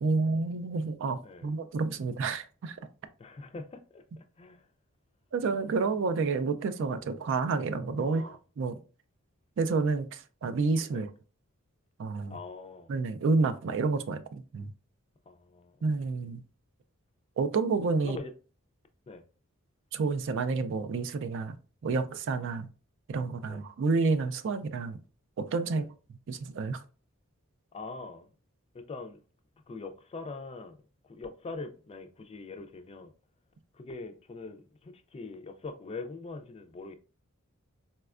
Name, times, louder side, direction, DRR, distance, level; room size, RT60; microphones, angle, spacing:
voice 1, 0.0-2.8 5.3-8.8 9.6-11.1 12.0-12.4 12.9-14.7 15.8-16.4 17.4-18.2 19.9-21.6 21.8-22.7 23.1-25.0 25.4-25.9 26.3-26.8, right 4 dB, 60° right, 0.4 m, -29 dB
voice 2, 3.2-4.7 8.0-8.4 10.9-11.0 12.3-12.9 15.3-15.8 18.0-18.3 19.1-19.2 23.5-23.6 25.7-25.9 27.7-28.3 28.7-29.2 29.7-30.8 31.1-33.1 33.7-37.0, left 3 dB, 25° left, 0.3 m, -43 dB
4.1 x 2.2 x 2.4 m
head